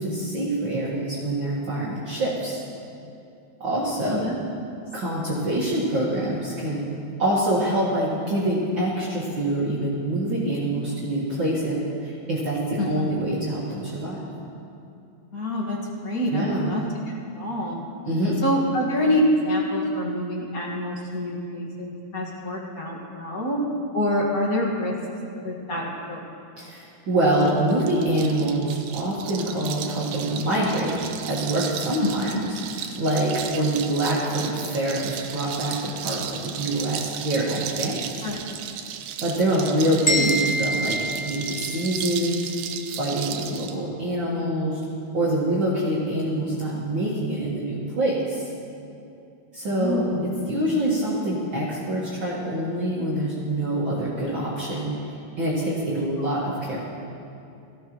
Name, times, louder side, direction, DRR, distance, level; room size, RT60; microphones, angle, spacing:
voice 1, 0.0-2.6 3.6-4.3 4.9-6.9 7.2-14.2 16.3-16.7 18.0-18.4 26.6-31.0 31.2-38.3 39.2-42.5 43.0-44.8 45.1-48.5 49.5-54.9 55.4-56.8, right 1 dB, 45° right, -7 dB, 2.1 m, -25 dB
voice 2, 12.8-13.1 15.3-16.8 17.4-17.8 18.4-23.6 23.9-25.0 25.4-26.3 32.0-32.4 38.2-38.4 39.7-39.8 40.1-40.3 49.7-50.2 56.2-56.3, left 1 dB, 35° left, -2 dB, 1.8 m, -26 dB
sound 1, 27.3-43.8, right 9 dB, 90° right, 2.2 m, -35 dB
sound 2, 40.1-42.1, equal, 50° left, 0.6 m, -26 dB
18.0 x 14.5 x 3.1 m, 2.6 s
omnidirectional pair, 3.5 m